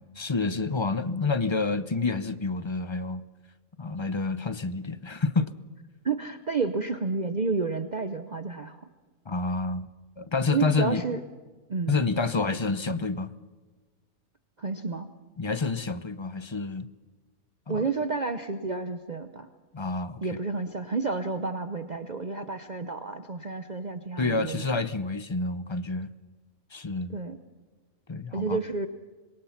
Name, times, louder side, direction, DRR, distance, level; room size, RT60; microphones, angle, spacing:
voice 1, 0.0-3.2 3.8-5.5 9.3-9.9 10.2-11.0 11.9-13.3 15.4-16.9 17.7-17.8 19.7-20.4 24.2-26.1 26.7-27.2 28.1-28.6, left 3 dB, 30° left, 0.6 m, -28 dB
voice 2, 6.0-8.9 10.5-11.2 11.7-12.1 14.6-15.1 17.7-19.5 20.2-24.6 27.1-27.4 28.3-28.9, right 4 dB, 35° right, 0.9 m, -30 dB
26.0 x 22.5 x 5.9 m
omnidirectional pair, 1.4 m